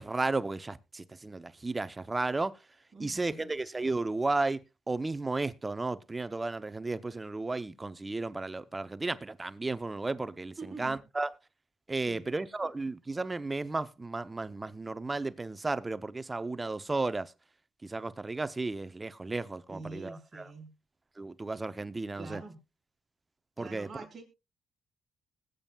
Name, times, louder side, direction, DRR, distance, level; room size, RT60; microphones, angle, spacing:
voice 1, 0.0-2.6 3.0-11.3 11.9-17.3 17.8-20.5 21.2-22.4 23.6-23.9, right 3 dB, 20° right, 0.6 m, -34 dB
voice 2, 2.9-3.5 10.6-11.0 12.1-12.2 19.7-20.7 22.1-22.6 23.6-24.2, right 3 dB, 35° right, 4.9 m, -45 dB
20.5 x 8.9 x 2.3 m
cardioid pair, 90°, 0 cm